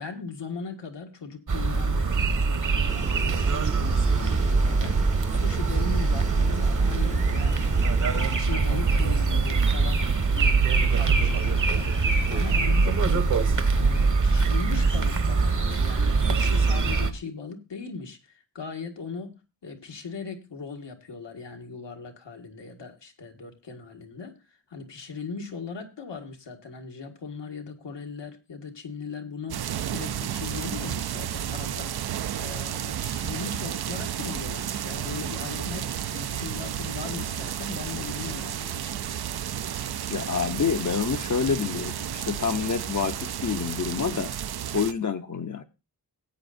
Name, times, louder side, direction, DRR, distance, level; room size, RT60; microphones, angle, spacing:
voice 1, 0.0-10.6 10.9-13.3 13.7-19.4 19.6-39.3, left 5 dB, 85° left, 1.7 m, -39 dB
sound 1, 1.5-17.1, right 4 dB, 45° right, 1.1 m, -23 dB
sound 2, 2.9-9.4, right 2 dB, 20° right, 0.7 m, -39 dB
sound 3, 29.5-44.9, right 10 dB, 65° right, 0.5 m, -32 dB
voice 2, 40.1-44.3 44.7-45.6, left 6 dB, 45° left, 0.7 m, -27 dB
18.0 x 8.7 x 2.5 m
wide cardioid pair, 110°, 42 cm